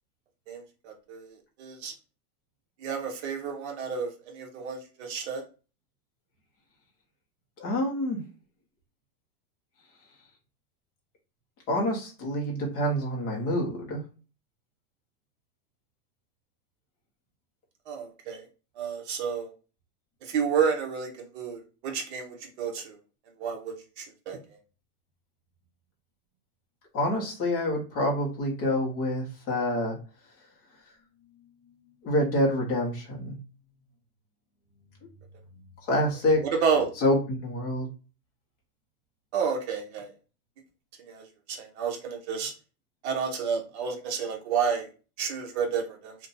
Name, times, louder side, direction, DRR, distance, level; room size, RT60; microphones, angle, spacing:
voice 1, 0.5-1.3 1.6-1.9 2.8-5.4 17.9-18.4 18.8-19.5 20.3-22.9 23.4-24.4 36.4-36.9 39.3-40.1 41.1-41.2 41.5-42.5 43.0-44.9 45.2-46.2, right 6 dB, 50° right, 2 dB, 0.8 m, -30 dB
voice 2, 7.6-8.2 11.7-14.0 26.9-30.0 32.0-33.3 35.9-36.4 37.0-37.9, left 1 dB, 20° left, -1 dB, 0.6 m, -27 dB
2.6 x 2.2 x 3.7 m, 0.34 s
supercardioid pair, 175°, 44 cm